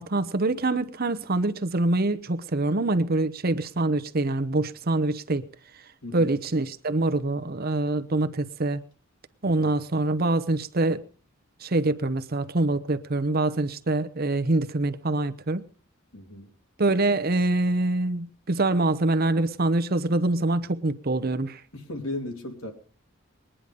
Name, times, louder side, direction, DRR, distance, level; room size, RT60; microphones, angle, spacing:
voice 1, 0.0-5.4 6.1-8.8 9.4-11.0 11.6-15.7 16.8-21.6, right 2 dB, 45° right, 0.9 m, -25 dB
voice 2, 6.0-6.3 9.4-9.7 16.1-16.5 21.7-22.7, left 2 dB, 90° left, 3.1 m, -36 dB
21.0 x 10.0 x 5.3 m
head